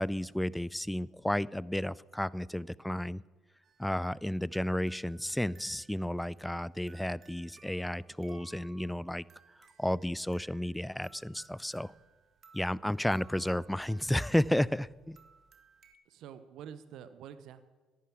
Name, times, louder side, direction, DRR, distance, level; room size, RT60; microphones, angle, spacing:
voice 1, 0.0-3.2 3.8-9.2 9.8-11.9 12.5-15.2, left 1 dB, 5° left, 22 dB, 0.4 m, -32 dB
sound 1, 3.6-15.9, right 5 dB, 45° right, 1.6 m, -61 dB
voice 2, 16.0-17.6, right 9 dB, 65° right, 13 dB, 0.8 m, -47 dB
11.0 x 9.6 x 8.5 m, 1.3 s
hypercardioid pair, 50°, 0 cm